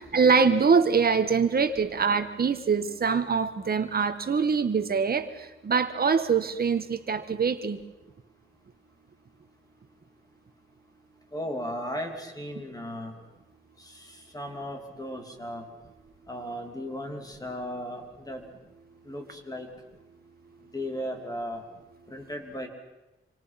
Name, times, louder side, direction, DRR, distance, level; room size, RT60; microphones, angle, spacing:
voice 1, 0.0-5.3 5.6-7.8, right 5 dB, 45° right, 9 dB, 1.6 m, -24 dB
voice 2, 11.3-13.1 13.8-15.7 16.3-18.5 19.0-19.7 20.7-21.6 22.1-22.7, equal, 15° left, 3 dB, 3.0 m, -36 dB
27.0 x 26.0 x 5.9 m, 0.98 s
wide cardioid pair, 180°, 21 cm